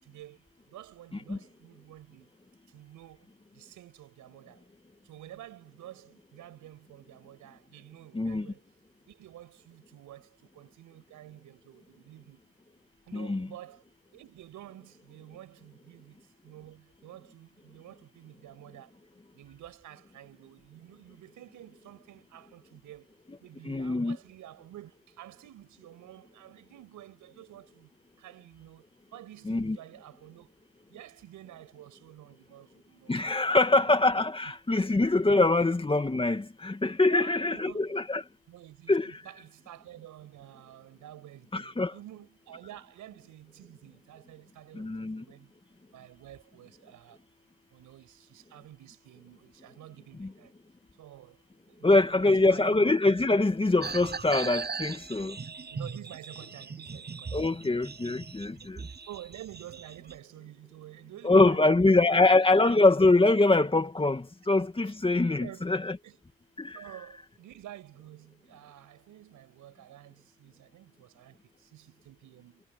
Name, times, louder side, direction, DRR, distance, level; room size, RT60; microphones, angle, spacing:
voice 1, 0.0-2.3 2.7-4.6 5.0-8.6 9.1-12.4 13.1-13.8 14.1-19.0 19.3-23.1 23.4-27.9 28.2-30.5 30.9-34.0 37.1-37.8 38.5-45.5 45.9-47.2 47.7-50.5 51.0-52.9 55.7-57.8 59.1-62.3 64.9-65.0 65.4-65.8 66.0-66.2 66.7-72.6, right 13 dB, 80° right, 6.2 m, -50 dB
voice 2, 8.1-8.5 13.1-13.5 23.7-24.2 29.5-29.8 33.1-38.2 38.9-39.1 41.5-41.9 44.7-45.2 50.2-50.3 51.8-55.4 57.3-58.9 61.2-66.0 66.6-66.8, left 2 dB, 20° left, 2.4 m, -24 dB
sound 1, 53.8-60.2, right 5 dB, 35° right, 7.8 m, -39 dB
cardioid pair, 90°, 30 cm